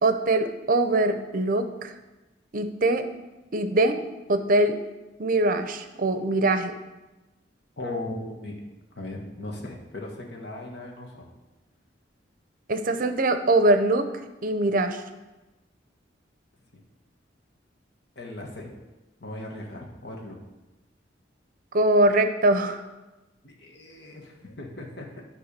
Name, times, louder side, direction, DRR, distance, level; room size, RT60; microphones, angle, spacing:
voice 1, 0.0-1.9 2.5-3.1 3.5-4.0 4.3-4.8 5.2-6.8 12.7-14.1 14.4-15.0 21.7-22.8, right 2 dB, 50° right, 9 dB, 0.7 m, -22 dB
voice 2, 7.8-8.6 9.0-11.3 18.1-18.7 19.2-20.4 23.4-25.2, left 2 dB, 65° left, 0 dB, 1.5 m, -37 dB
10.0 x 3.5 x 6.7 m, 1.1 s
head